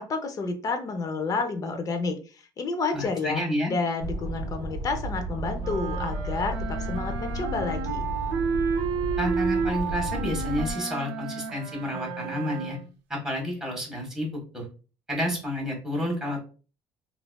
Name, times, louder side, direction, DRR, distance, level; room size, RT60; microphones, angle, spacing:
voice 1, 0.0-3.4 3.7-8.1, left 4 dB, 35° left, 6 dB, 0.6 m, -30 dB
voice 2, 2.9-3.7 9.2-12.8 13.1-14.6 15.1-16.4, left 1 dB, 5° right, -1 dB, 1.5 m, -30 dB
sound 1, 4.0-10.7, equal, 60° left, 1.4 m, -33 dB
sound 2, 5.6-12.9, right 6 dB, 90° right, 0.5 m, -31 dB
3.2 x 2.5 x 2.2 m, 0.35 s
cardioid pair, 105°, 10 cm